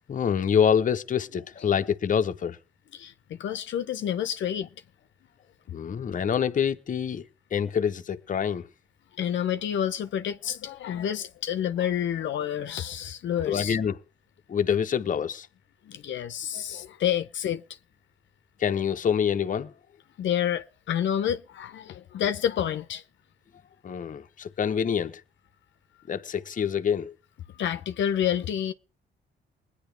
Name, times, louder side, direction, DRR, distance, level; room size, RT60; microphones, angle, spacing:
voice 1, 0.1-2.6 5.7-7.2 7.5-8.7 13.5-14.0 14.5-15.5 18.6-19.7 23.8-25.2 26.1-27.1, left 7 dB, 40° left, 0.9 m, -26 dB
voice 2, 2.9-4.7 9.2-13.8 15.9-17.6 20.2-23.0 27.6-28.7, left 10 dB, 70° left, 0.8 m, -29 dB
20.5 x 9.9 x 3.4 m
cardioid pair, 90°, 20 cm